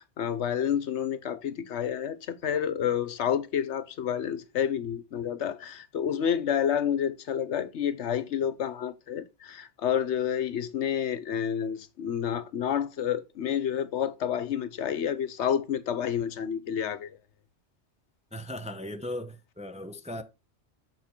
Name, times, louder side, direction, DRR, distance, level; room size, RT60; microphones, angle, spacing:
voice 1, 0.0-17.2, left 9 dB, 70° left, 1.0 m, -29 dB
voice 2, 18.3-20.2, left 1 dB, 5° right, 0.6 m, -37 dB
7.4 x 5.7 x 4.4 m
omnidirectional pair, 1.2 m